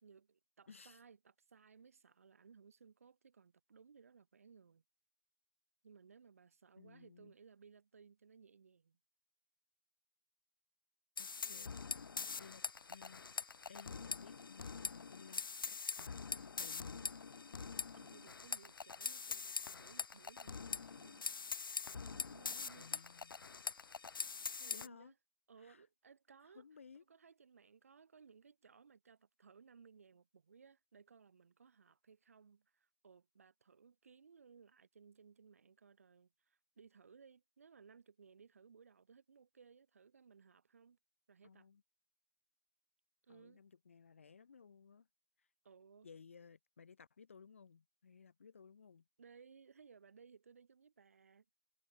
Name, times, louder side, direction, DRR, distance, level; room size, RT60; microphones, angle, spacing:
voice 1, 0.0-4.8 5.8-9.0 11.4-11.8 17.9-21.4 22.0-23.2 24.6-25.1 25.5-26.7 27.1-41.0 41.3-41.7 43.2-43.6 45.6-46.1 49.2-51.5, right 6 dB, 40° right, 1.6 m, -62 dB
voice 2, 0.7-1.0 6.8-7.3 11.2-11.8 12.3-13.4 13.7-17.0 22.8-23.4 24.7-25.1 25.6-25.8 26.5-27.0 41.4-41.8 43.3-45.1 45.4-45.5 46.0-49.0, left 6 dB, 35° left, 0.7 m, -59 dB
sound 1, 11.2-24.9, left 5 dB, 75° left, 0.4 m, -44 dB
figure-of-eight pair, 165°, 12 cm